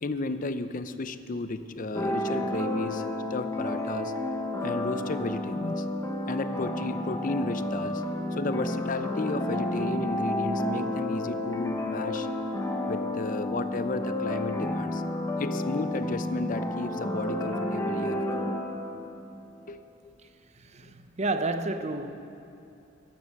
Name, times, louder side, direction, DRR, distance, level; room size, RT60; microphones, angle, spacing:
voice 1, 0.0-3.0 3.3-4.1 4.6-5.9 6.3-8.0 8.3-12.3 12.9-15.0 15.4-18.5 19.7-19.8, left 2 dB, 40° left, 11 dB, 0.5 m, -33 dB
sound 1, 1.9-19.2, left 1 dB, 15° left, 0.9 m, -31 dB
voice 2, 20.5-22.1, right 2 dB, 35° right, 9 dB, 0.6 m, -31 dB
14.0 x 10.5 x 6.4 m, 2.9 s
head